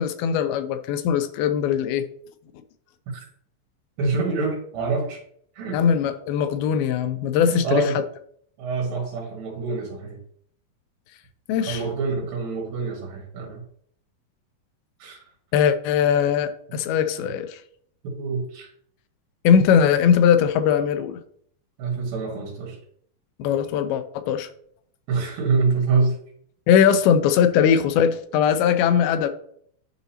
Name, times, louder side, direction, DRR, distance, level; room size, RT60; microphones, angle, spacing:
voice 1, 0.0-2.1 5.7-7.8 11.5-11.8 15.5-17.6 19.4-21.2 23.4-24.5 26.7-29.3, left 8 dB, 90° left, 10 dB, 2.5 m, -20 dB
voice 2, 4.0-5.2 5.5-5.8 7.4-8.0 8.6-10.2 11.7-13.6 15.0-15.2 17.2-17.3 18.0-18.7 21.8-22.8 25.1-26.2, right 4 dB, 70° right, -1 dB, 3.3 m, -26 dB
10.5 x 4.0 x 2.8 m, 0.64 s
omnidirectional pair, 4.3 m